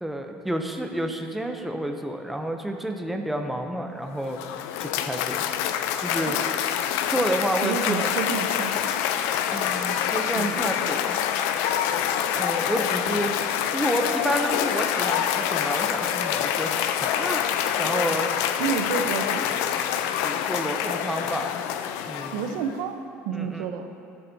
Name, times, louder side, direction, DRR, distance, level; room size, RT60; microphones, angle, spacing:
voice 1, 0.0-4.4 4.8-5.4 6.0-6.4 7.1-8.1 9.5-11.2 12.3-13.3 13.7-18.3 20.2-21.6 22.1-22.4 23.3-23.7, right 1 dB, 5° right, 4 dB, 0.5 m, -30 dB
Cheering / Applause, 4.1-22.7, left 9 dB, 80° left, 0.4 m, -26 dB
voice 2, 7.6-9.0 10.4-10.7 18.6-19.5 22.3-23.0 23.2-23.9, right 6 dB, 85° right, 6 dB, 0.7 m, -29 dB
13.0 x 7.0 x 2.7 m, 2.5 s
cardioid pair, 165°, 5 cm